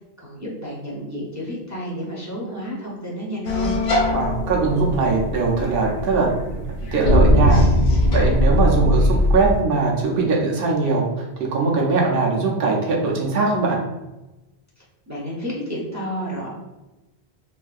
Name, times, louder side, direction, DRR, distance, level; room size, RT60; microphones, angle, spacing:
voice 1, 0.2-3.8 14.8-16.5, equal, 25° right, -5 dB, 0.4 m, -31 dB
sound 1, 3.4-9.6, left 1 dB, 60° left, 0.7 m, -20 dB
voice 2, 4.1-6.6 6.9-7.6 8.1-13.8, right 3 dB, 65° right, -2 dB, 0.9 m, -21 dB
3.3 x 2.6 x 2.4 m, 1.0 s
omnidirectional pair, 1.1 m